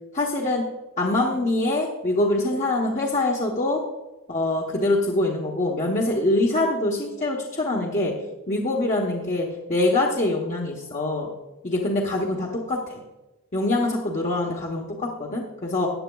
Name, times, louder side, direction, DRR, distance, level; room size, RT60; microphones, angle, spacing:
voice 1, 0.1-0.7 1.0-3.8 4.3-8.1 8.5-11.3 11.6-13.0 13.5-15.9, left 2 dB, 35° left, -2 dB, 1.0 m, -24 dB
15.0 x 9.3 x 2.3 m, 1.1 s
head